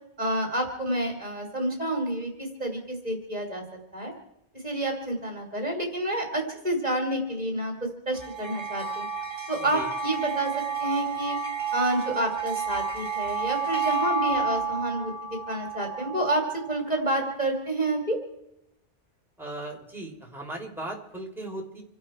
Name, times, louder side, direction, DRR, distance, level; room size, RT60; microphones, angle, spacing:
voice 1, 0.2-3.6 3.9-4.1 4.6-7.7 8.1-9.1 9.5-10.5 10.8-11.4 11.7-18.2, right 1 dB, 35° right, 2 dB, 3.1 m, -29 dB
sound 1, 8.2-16.8, right 5 dB, 50° right, 2.1 m, -31 dB
voice 2, 19.4-21.8, right 1 dB, ahead, -1 dB, 3.5 m, -37 dB
27.5 x 12.0 x 4.4 m, 0.83 s
omnidirectional pair, 1.2 m